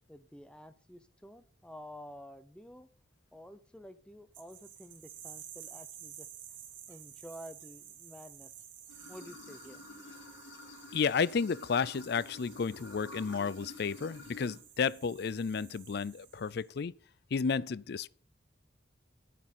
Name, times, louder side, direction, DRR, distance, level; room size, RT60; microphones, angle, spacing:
voice 1, 0.1-2.9 3.3-6.3 6.9-8.5 9.1-9.8, equal, 5° left, 0.7 m, -50 dB
sound 1, 4.3-16.7, right 10 dB, 70° right, 2.2 m, -52 dB
Water / Sink (filling or washing), 8.9-14.6, left 2 dB, 80° left, 4.0 m, -50 dB
voice 2, 10.9-16.9 17.3-18.1, left 5 dB, 55° left, 0.4 m, -32 dB
9.8 x 9.4 x 5.6 m
head